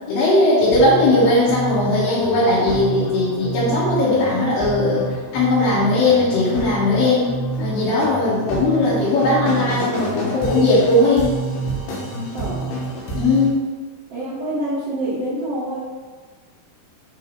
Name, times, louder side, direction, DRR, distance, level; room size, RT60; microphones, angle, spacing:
voice 1, 0.1-11.4 13.1-13.6, left 2 dB, 70° left, -11 dB, 2.8 m, -18 dB
sound 1, 0.6-13.5, right 3 dB, 90° left, 3.1 m, -28 dB
voice 2, 12.3-12.7 14.1-15.8, right 1 dB, 80° right, -9 dB, 1.3 m, -26 dB
6.1 x 3.3 x 4.6 m, 1.4 s
omnidirectional pair, 4.4 m